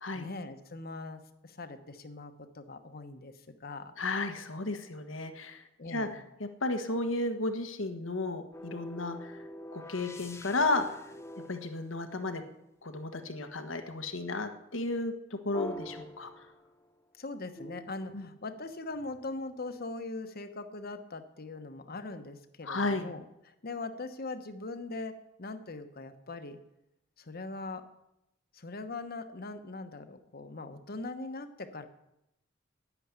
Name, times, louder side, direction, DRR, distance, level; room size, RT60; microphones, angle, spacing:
voice 1, 0.1-3.3 3.6-3.9 5.8-6.2 17.2-26.6 27.2-27.9 28.5-31.9, left 3 dB, 50° left, 9 dB, 1.1 m, -41 dB
voice 2, 4.0-6.1 6.4-9.4 9.7-11.0 11.5-12.4 12.8-16.3 18.1-18.3 22.6-23.1, left 2 dB, 85° left, 7 dB, 1.5 m, -33 dB
sound 1, 8.5-12.7 15.5-17.0 17.6-19.3, equal, 15° left, 1.1 m, -46 dB
11.0 x 10.0 x 8.2 m, 0.85 s
head